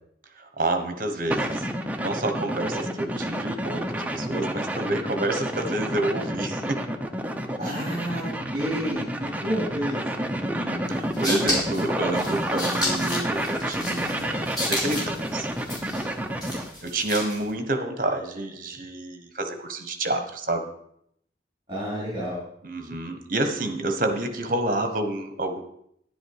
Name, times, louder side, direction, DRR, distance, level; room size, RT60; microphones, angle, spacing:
voice 1, 0.4-1.7 2.0-6.8 7.6-7.7 10.2-15.5 16.8-20.6 22.6-25.6, right 2 dB, 45° right, 7 dB, 1.2 m, -29 dB
sound 1, 1.3-16.7, right 1 dB, 10° right, 0.7 m, -29 dB
voice 2, 7.6-10.0 16.2-16.6 21.7-22.4, equal, 30° right, -8 dB, 3.9 m, -30 dB
sound 2, 10.9-17.5, left 1 dB, 25° left, 3.9 m, -32 dB
10.5 x 10.0 x 4.8 m, 0.72 s
head